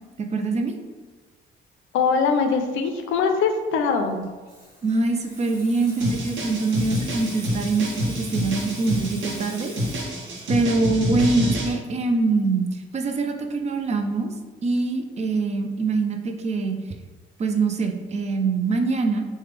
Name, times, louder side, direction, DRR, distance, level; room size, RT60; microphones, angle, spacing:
voice 1, 0.2-0.8 4.8-9.7 10.5-14.3 14.6-16.8 17.4-19.3, right 3 dB, 35° right, 5 dB, 0.4 m, -24 dB
voice 2, 1.9-4.2, left 5 dB, 85° left, 6 dB, 0.4 m, -22 dB
Water tap faucet / Sink (filling or washing), 4.1-13.4 13.7-14.0, equal, 20° right, 1.2 m, -45 dB
sound 1, 6.0-11.7, equal, 75° right, 0.7 m, -28 dB
3.2 x 2.1 x 3.3 m, 1.3 s
cardioid pair, 90°, 20 cm